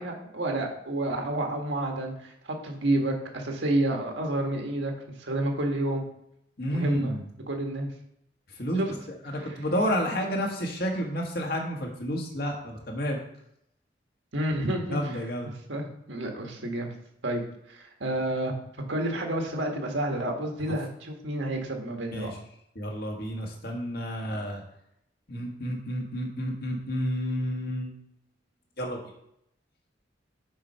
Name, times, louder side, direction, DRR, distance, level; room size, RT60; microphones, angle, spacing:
voice 1, 0.0-4.9 5.2-6.0 6.7-7.1 7.5-7.9 8.8-8.9 9.4-9.5 14.3-15.1 15.4-16.9 17.2-17.4 17.7-18.5 18.9-22.3, right 1 dB, 75° right, 2 dB, 1.6 m, -29 dB
voice 2, 6.6-7.2 8.6-8.8 9.2-13.2 14.9-15.5 22.1-22.4 22.8-24.6 25.3-27.9 28.8-29.0, equal, 55° left, 1 dB, 1.6 m, -30 dB
7.3 x 4.6 x 5.6 m, 0.74 s
head